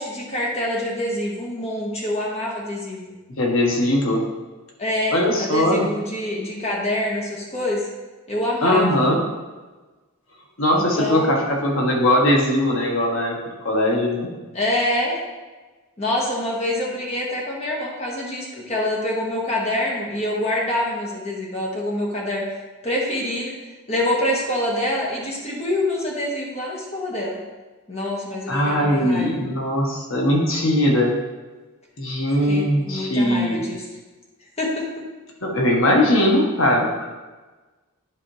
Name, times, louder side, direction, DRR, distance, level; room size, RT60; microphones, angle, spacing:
voice 1, 0.0-3.1 4.8-7.8 8.3-9.1 10.7-11.4 14.5-15.2 16.0-22.4 22.8-23.5 23.9-27.4 27.9-29.3 32.4-33.8 34.6-35.0, left 1 dB, 30° left, -3 dB, 1.7 m, -26 dB
voice 2, 3.4-4.2 5.1-5.8 8.6-9.2 10.6-13.4 13.6-14.3 28.5-31.1 32.0-33.6 35.4-36.9, left 1 dB, 65° left, -1 dB, 1.4 m, -20 dB
11.0 x 5.0 x 3.3 m, 1.2 s
head